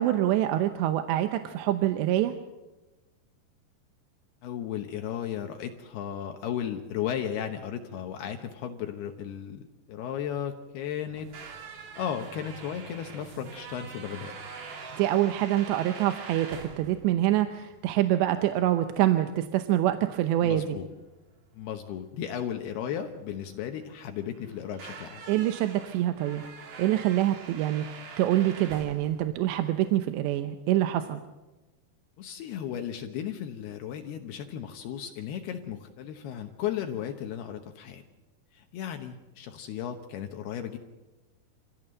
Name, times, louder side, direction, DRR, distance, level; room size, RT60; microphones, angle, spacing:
voice 1, 0.0-2.3 15.0-16.5 16.8-20.8 25.3-26.4 26.8-31.2, right 13 dB, 85° right, 8 dB, 3.1 m, -25 dB
voice 2, 4.4-11.4 11.7-14.4 20.4-20.9 21.5-25.2 32.2-38.0 38.5-40.8, left 9 dB, 75° left, 5 dB, 3.0 m, -35 dB
sound 1, 11.1-30.0, right 5 dB, 55° right, 3.7 m, -45 dB
27.5 x 16.0 x 7.8 m, 1.1 s
omnidirectional pair, 5.0 m